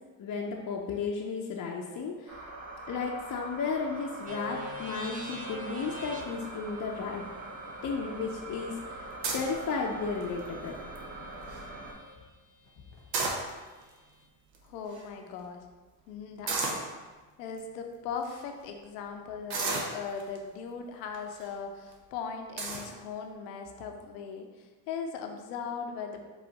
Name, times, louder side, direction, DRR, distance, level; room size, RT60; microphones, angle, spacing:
voice 1, 0.2-2.5 2.9-7.2 7.8-9.0 9.3-10.8, left 5 dB, 35° left, -1 dB, 0.6 m, -34 dB
sound 1, 2.3-11.9, right 2 dB, 70° right, 1.2 m, -43 dB
sound 2, 4.3-12.1, equal, 15° right, 0.8 m, -46 dB
sound 3, 9.2-9.6 10.2-10.5 11.0-11.1 11.3-11.6 12.9-13.8 14.5-14.6 14.9-15.0 16.5-16.9 17.6-17.7 18.2-18.4 19.5-20.4 21.1-21.5 21.9-22.0 22.6-22.9, right 3 dB, 85° right, 0.8 m, -32 dB
voice 2, 14.6-15.6 16.1-16.8 17.4-26.2, left 6 dB, 85° left, 4 dB, 0.7 m, -39 dB
4.6 x 2.7 x 4.0 m, 1.3 s
hypercardioid pair, 65°, 49 cm